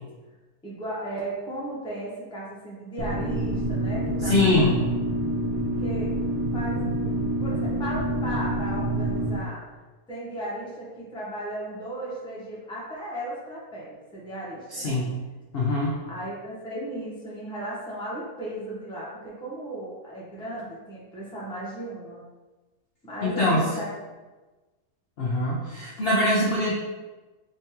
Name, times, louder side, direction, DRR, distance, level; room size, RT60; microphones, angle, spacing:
voice 1, 0.6-4.8 5.8-6.1 6.5-7.0 7.4-9.6 10.1-15.0 16.1-22.2 23.0-23.9, right 1 dB, 5° left, -6 dB, 0.6 m, -35 dB
sound 1, 3.0-9.4, right 1 dB, 80° right, 1.1 m, -27 dB
voice 2, 4.2-4.8 14.7-15.2 15.5-16.0 23.2-23.7 25.2-26.7, left 2 dB, 60° left, -5 dB, 0.6 m, -23 dB
3.4 x 3.2 x 2.9 m, 1.2 s
omnidirectional pair, 1.5 m